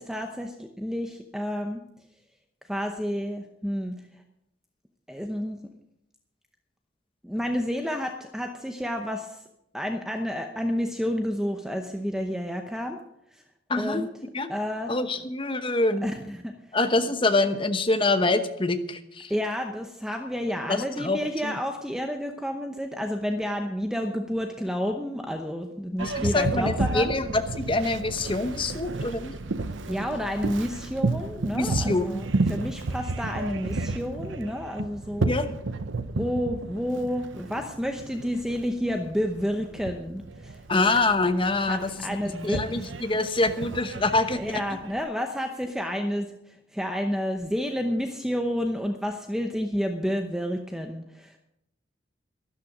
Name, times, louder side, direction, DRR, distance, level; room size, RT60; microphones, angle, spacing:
voice 1, 0.0-1.8 2.7-3.9 5.1-5.6 7.2-9.4 9.7-13.0 13.3-13.4 13.7-14.1 14.5-15.0 16.0-16.5 19.3-27.1 29.9-35.3 36.2-40.6 41.7-42.6 44.3-51.4, equal, 5° right, 4 dB, 0.7 m, -30 dB
voice 2, 13.7-14.0 14.3-14.5 14.9-16.1 16.7-19.3 20.7-21.5 26.0-29.3 31.5-32.2 35.2-35.5 40.7-41.9 42.4-44.6, left 2 dB, 25° left, 8 dB, 1.0 m, -25 dB
Boat Water vehicle, 26.0-45.0, right 2 dB, 75° right, 0.8 m, -32 dB
12.5 x 11.5 x 6.1 m, 0.81 s
head